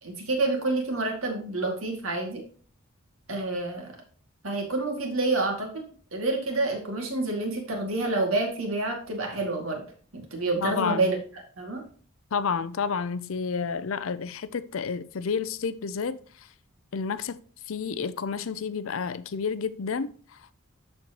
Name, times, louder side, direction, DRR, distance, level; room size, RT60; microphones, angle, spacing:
voice 1, 0.0-2.4 3.3-4.0 4.4-5.7 6.1-9.8 10.1-11.2 11.6-11.8, right 2 dB, 75° right, 2.4 m, -28 dB
voice 2, 10.6-11.1 12.3-16.2 16.9-17.4 17.7-20.1, left 5 dB, 70° left, 0.5 m, -30 dB
13.0 x 4.4 x 3.0 m
head